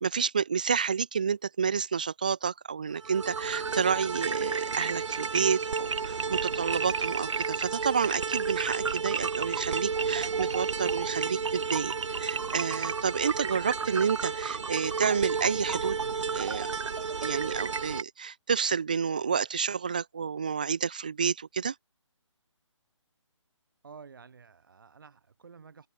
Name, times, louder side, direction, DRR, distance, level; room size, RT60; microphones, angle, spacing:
voice 1, 0.0-16.0 16.3-16.7 17.2-21.7, right 6 dB, 15° right, 0.5 m, -30 dB
sound 1, 3.0-18.0, right 5 dB, 70° right, 0.8 m, -32 dB
voice 2, 23.8-25.9, right 5 dB, 45° right, 3.7 m, -51 dB
hypercardioid pair, 175°, 16 cm